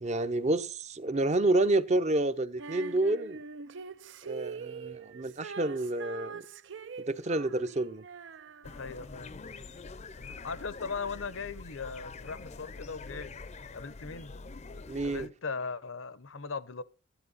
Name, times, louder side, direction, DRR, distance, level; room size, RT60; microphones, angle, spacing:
voice 1, 0.0-3.4 4.2-6.4 7.1-8.0 14.9-15.3, right 2 dB, 35° right, 0.8 m, -29 dB
Female singing, 2.6-9.1, right 5 dB, 65° right, 0.5 m, -43 dB
voice 2, 8.6-9.4 10.2-13.4 13.7-14.4 15.0-16.8, left 4 dB, 85° left, 0.9 m, -39 dB
sound 1, 8.6-15.3, left 3 dB, 35° left, 0.6 m, -45 dB
13.0 x 10.0 x 4.1 m
head